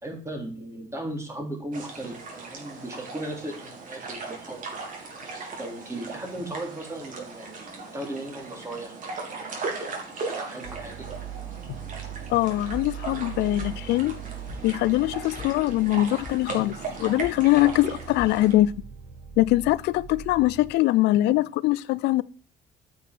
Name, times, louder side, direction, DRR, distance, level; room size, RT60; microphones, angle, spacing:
voice 1, 0.0-4.6 5.6-8.9 10.3-11.1, right 1 dB, 15° right, 3.6 m, -36 dB
sound 1, 1.7-18.5, right 4 dB, 50° right, 3.4 m, -38 dB
sound 2, 10.6-20.7, right 9 dB, 65° right, 4.0 m, -41 dB
voice 2, 12.3-14.2 14.6-18.7 19.4-22.2, left 17 dB, 80° left, 0.4 m, -22 dB
sound 3, 12.7-13.1 13.5-14.0 14.4-14.9 15.3-15.8 16.2-16.8 17.2-17.6 18.1-18.3, left 4 dB, 30° left, 1.8 m, -40 dB
9.0 x 6.2 x 6.1 m
cardioid pair, 110°, 17 cm